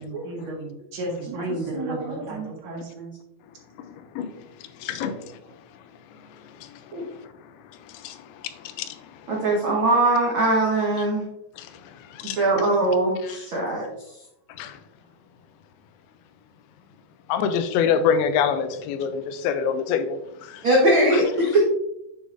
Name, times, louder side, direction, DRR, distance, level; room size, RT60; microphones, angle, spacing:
voice 1, 0.0-3.1, right 2 dB, 55° right, -2 dB, 2.4 m, -33 dB
voice 2, 1.7-2.4 5.0-5.1 6.9-7.0 9.3-11.2 12.2-13.9 20.6-21.6, right 1 dB, 90° right, -3 dB, 1.1 m, -21 dB
voice 3, 4.8-5.2 8.0-8.2 8.6-8.9 11.6-11.7 12.1-12.4 14.6-14.8 17.3-20.6 21.1-21.2, left 7 dB, 85° left, 10 dB, 2.5 m, -25 dB
7.7 x 6.5 x 2.6 m, 0.83 s
omnidirectional pair, 4.4 m